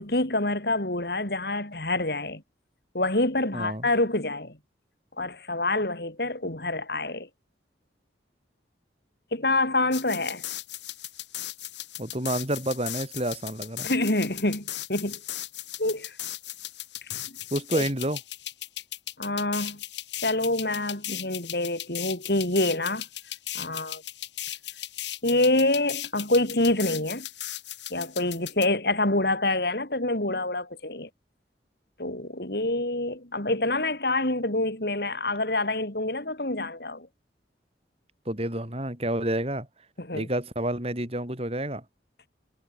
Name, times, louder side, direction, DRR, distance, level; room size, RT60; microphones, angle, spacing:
voice 1, 0.0-2.4 2.9-4.6 5.2-7.3 9.3-10.4 13.8-15.2 15.8-16.2 17.3-17.4 17.7-17.8 19.2-19.8 20.2-23.0 23.5-24.0 25.2-27.3 27.9-31.1 32.0-37.1 40.0-40.3, left 2 dB, 60° left, 4.4 m, -26 dB
voice 2, 3.5-3.9 12.0-13.9 17.5-18.2 38.2-39.7 40.1-41.8, right 1 dB, 35° right, 6.6 m, -29 dB
sound 1, 9.9-28.7, left 13 dB, 80° left, 5.5 m, -37 dB
head